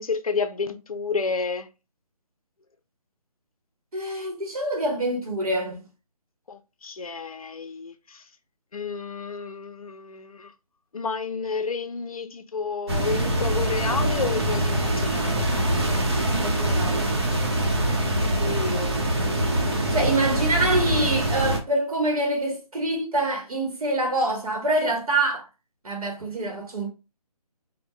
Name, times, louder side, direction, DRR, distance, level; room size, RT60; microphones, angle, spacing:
voice 1, 0.0-1.7 6.5-8.2 8.7-10.5 10.9-15.5 18.4-19.0 19.4-19.9, left 4 dB, 65° left, 0.6 m, -31 dB
voice 2, 3.9-5.8 16.2-17.3 19.9-25.5 25.8-26.9, right 2 dB, 65° right, 1.0 m, -26 dB
sound 1, 12.9-21.6, right 1 dB, 40° right, 0.8 m, -24 dB
3.5 x 2.1 x 3.1 m
hypercardioid pair, 175°, 20 cm